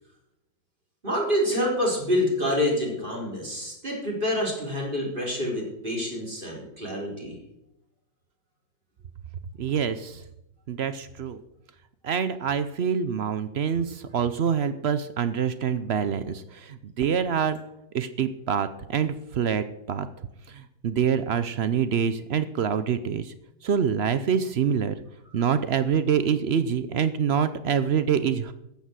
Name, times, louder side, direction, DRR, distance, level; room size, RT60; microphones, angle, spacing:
voice 1, 1.0-7.3, left 1 dB, 25° right, -2 dB, 4.6 m, -27 dB
voice 2, 9.6-10.2 10.7-11.4 12.0-17.6 17.9-20.1 20.5-23.3 23.6-24.9 25.3-28.5, right 7 dB, 85° right, 12 dB, 0.5 m, -26 dB
14.0 x 9.0 x 7.5 m, 0.85 s
omnidirectional pair, 2.0 m